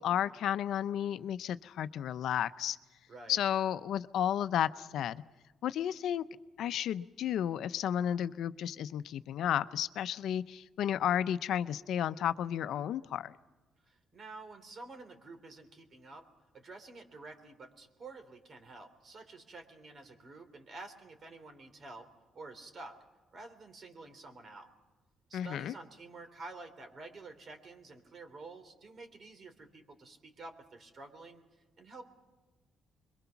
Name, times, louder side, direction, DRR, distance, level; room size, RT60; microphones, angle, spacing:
voice 1, 0.0-2.8 3.3-5.2 5.6-6.2 6.6-13.3 25.3-25.7, left 10 dB, 75° left, 13 dB, 0.7 m, -32 dB
voice 2, 3.1-3.4 13.8-16.3 16.5-22.1 22.3-23.0 23.3-24.7 25.3-31.4 31.8-32.1, right 3 dB, 45° right, 7 dB, 3.5 m, -50 dB
26.5 x 22.5 x 5.9 m, 1.2 s
cardioid pair, 90°, 0 cm